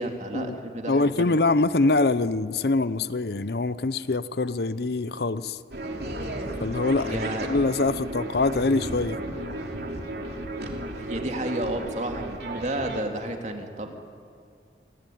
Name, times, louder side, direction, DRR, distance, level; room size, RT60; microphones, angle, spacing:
voice 1, 0.0-1.4 7.0-7.5 11.0-13.9, right 1 dB, 40° right, 4 dB, 2.7 m, -31 dB
voice 2, 0.9-5.6 6.6-9.2, left 3 dB, 65° left, 15 dB, 0.7 m, -24 dB
sound 1, 5.7-13.0, right 1 dB, 65° right, 3.1 m, -34 dB
28.5 x 20.0 x 9.3 m, 2.3 s
head